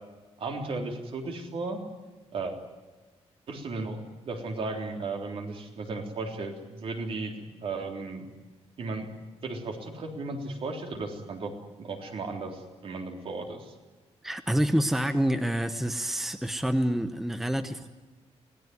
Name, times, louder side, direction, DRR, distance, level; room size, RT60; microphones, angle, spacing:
voice 1, 0.4-1.8 2.3-2.5 3.5-4.0 4.2-8.3 8.8-9.1 9.4-13.7, right 3 dB, 55° right, 3 dB, 3.6 m, -35 dB
voice 2, 14.2-17.9, equal, 5° right, 9 dB, 0.9 m, -27 dB
26.5 x 18.5 x 9.4 m, 1.3 s
wide cardioid pair, 175°, 11 cm